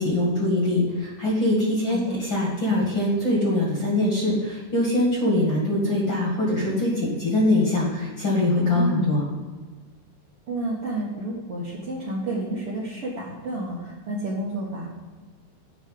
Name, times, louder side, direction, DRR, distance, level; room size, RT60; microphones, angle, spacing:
voice 1, 0.0-9.2, left 1 dB, 45° left, -3 dB, 1.7 m, -23 dB
voice 2, 1.9-2.2 8.7-9.1 10.5-14.9, right 1 dB, 65° right, -7 dB, 1.4 m, -30 dB
9.0 x 4.9 x 7.6 m, 1.4 s
omnidirectional pair, 5.3 m